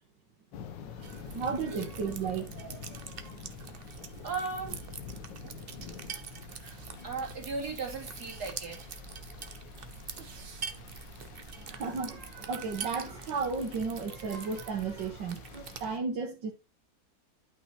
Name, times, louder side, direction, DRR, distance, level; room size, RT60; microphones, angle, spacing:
sound 1, 0.5-16.0, left 7 dB, 80° left, 1.6 m, -48 dB
voice 1, 0.9-3.5 11.7-16.5, right 5 dB, 85° right, 2.0 m, -35 dB
sound 2, 1.0-15.9, right 6 dB, 45° right, 0.8 m, -45 dB
voice 2, 4.2-4.8 5.4-5.5 6.5-8.9, right 4 dB, 60° right, 3.0 m, -37 dB
12.0 x 5.5 x 3.1 m
omnidirectional pair, 1.9 m